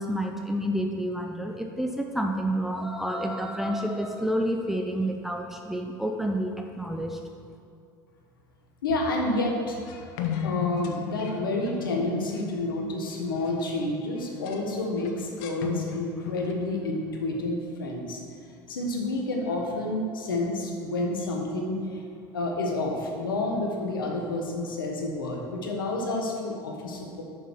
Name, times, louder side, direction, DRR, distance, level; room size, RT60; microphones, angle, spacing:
voice 1, 0.0-7.2, equal, 5° right, 2 dB, 0.6 m, -29 dB
voice 2, 8.8-9.8 10.4-18.2 18.7-22.0 22.3-27.2, left 2 dB, 85° left, 0 dB, 1.3 m, -29 dB
sound 1, 9.9-13.8 14.2-14.6 15.0-16.5, left 8 dB, 70° left, 0.8 m, -35 dB
6.6 x 6.4 x 5.8 m, 2.5 s
hypercardioid pair, 75°, 11 cm